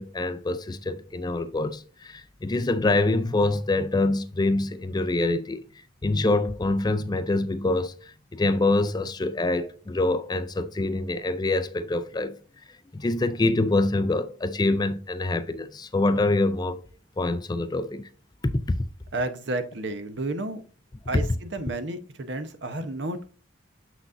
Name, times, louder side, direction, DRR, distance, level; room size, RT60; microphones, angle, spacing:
voice 1, 0.0-5.6 6.0-12.4 12.9-16.8 17.2-18.1 18.4-18.8 21.1-21.2, left 2 dB, 20° left, 0.4 m, -25 dB
voice 2, 19.1-20.6 21.1-23.3, right 2 dB, 60° right, 0.9 m, -31 dB
7.0 x 6.0 x 2.6 m
head